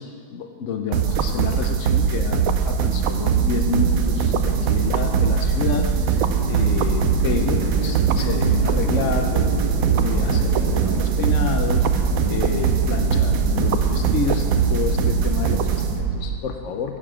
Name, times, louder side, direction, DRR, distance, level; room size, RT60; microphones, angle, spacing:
voice 1, 0.0-9.6 10.0-17.0, left 6 dB, 70° left, 4 dB, 0.7 m, -29 dB
sound 1, 0.9-16.4, right 7 dB, 70° right, 0.8 m, -21 dB
sound 2, 3.1-16.0, equal, 90° right, 3.4 m, -30 dB
16.0 x 7.0 x 6.2 m, 2.2 s
omnidirectional pair, 2.1 m